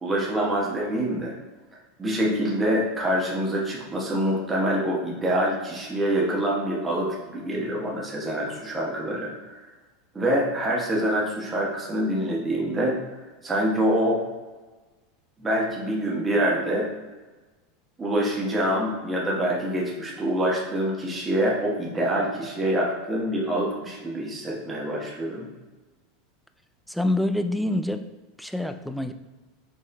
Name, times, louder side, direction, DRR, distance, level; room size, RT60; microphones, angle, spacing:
voice 1, 0.0-1.3 2.0-9.6 10.1-13.0 13.4-14.2 15.4-16.9 18.0-25.5, right 1 dB, 20° right, -4 dB, 1.2 m, -25 dB
voice 2, 26.9-28.0 28.4-29.1, left 1 dB, ahead, 8 dB, 0.3 m, -26 dB
6.2 x 3.7 x 2.2 m, 1.2 s
hypercardioid pair, 100°, 0 cm